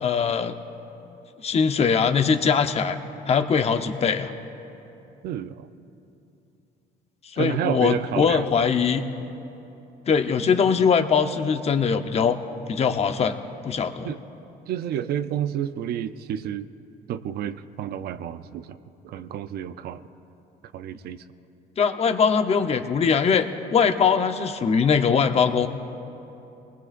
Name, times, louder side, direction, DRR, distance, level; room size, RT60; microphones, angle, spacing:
voice 1, 0.0-0.6 1.4-3.0 3.3-4.3 7.3-9.0 10.1-12.4 12.7-13.4 13.6-14.1 21.8-23.4 23.7-25.7, left 6 dB, 40° left, 7 dB, 0.9 m, -21 dB
voice 2, 5.2-5.7 7.4-8.7 14.0-14.2 14.7-16.7 17.1-18.8 19.0-20.0 20.7-21.2, right 10 dB, 70° right, 11 dB, 0.6 m, -30 dB
28.0 x 20.0 x 2.5 m, 2.9 s
cardioid pair, 110°, 17 cm